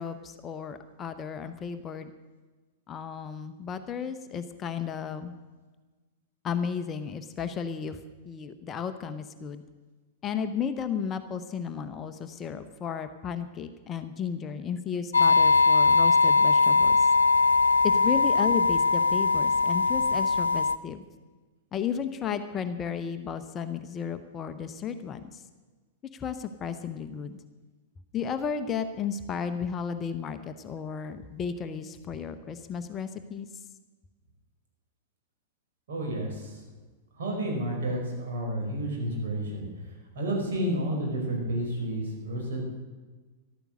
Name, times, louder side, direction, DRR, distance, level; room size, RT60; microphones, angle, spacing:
voice 1, 0.0-2.1 2.9-5.3 6.4-8.0 8.2-9.6 10.2-17.1 17.8-21.0 21.7-25.4 26.1-27.4 28.1-33.5, left 7 dB, 25° left, 9 dB, 0.8 m, -34 dB
sound 1, 15.1-20.8, left 4 dB, 75° left, 0.4 m, -21 dB
voice 2, 35.9-36.6 37.2-39.7 40.1-42.6, right 1 dB, 60° right, 0 dB, 4.7 m, -30 dB
14.0 x 12.5 x 6.4 m, 1.3 s
figure-of-eight pair, 95°, 0 cm